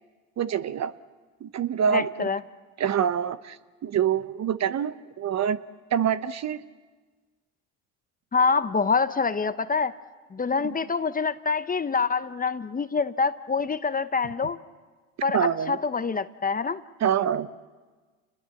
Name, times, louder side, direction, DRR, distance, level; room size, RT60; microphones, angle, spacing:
voice 1, 0.4-0.9 1.4-2.3 2.8-5.6 5.9-6.6 10.6-10.7 15.3-15.8 17.0-17.5, right 8 dB, 40° right, 14 dB, 1.0 m, -26 dB
voice 2, 1.9-2.4 8.3-9.9 10.3-14.6 15.2-16.8, left 5 dB, 20° left, 13 dB, 0.9 m, -26 dB
29.0 x 20.5 x 7.2 m, 1.4 s
hypercardioid pair, 75°, 42 cm